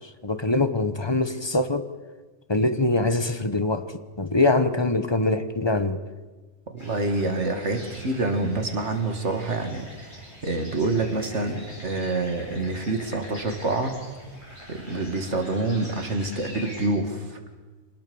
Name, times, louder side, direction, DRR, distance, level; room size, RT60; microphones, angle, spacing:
voice 1, 0.2-1.9 2.5-3.8 4.2-6.0, left 2 dB, 25° left, 10 dB, 1.0 m, -23 dB
voice 2, 6.7-13.9 14.7-17.4, right 2 dB, 75° right, 6 dB, 2.5 m, -27 dB
sound 1, 6.8-16.9, equal, 40° left, 8.1 m, -44 dB
26.0 x 19.0 x 7.1 m, 1.3 s
omnidirectional pair, 1.2 m